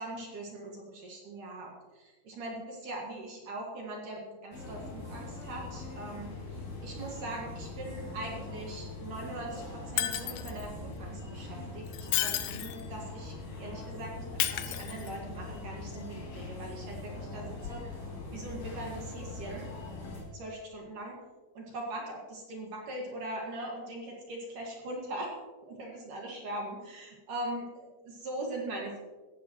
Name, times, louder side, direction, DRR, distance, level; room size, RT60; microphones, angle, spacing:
voice 1, 0.0-18.0 18.3-19.7 20.3-21.2 21.5-25.3 25.6-29.0, right 1 dB, 55° right, -1 dB, 2.8 m, -41 dB
sound 1, 4.5-20.2, left 2 dB, 35° left, 4.6 m, -42 dB
Shatter, 10.0-10.6 11.9-12.9 14.4-15.4 17.6-17.7, left 14 dB, 85° left, 2.5 m, -32 dB
16.5 x 14.0 x 3.1 m, 1.3 s
omnidirectional pair, 5.9 m